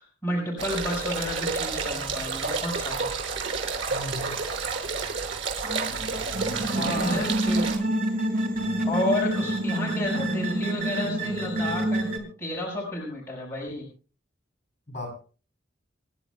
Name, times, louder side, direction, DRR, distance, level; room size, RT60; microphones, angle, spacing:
voice 1, 0.0-3.1 6.4-7.7 8.9-13.9, left 1 dB, 15° left, -3 dB, 5.4 m, -31 dB
sound 1, 0.6-7.8, right 4 dB, 90° right, 5.6 m, -30 dB
voice 2, 3.9-4.4 6.0-6.4 6.7-7.3 14.9-15.1, left 1 dB, 35° left, 1 dB, 7.0 m, -35 dB
sound 2, 5.6-12.2, right 1 dB, 50° right, 3.7 m, -28 dB
28.0 x 11.5 x 2.3 m, 0.37 s
head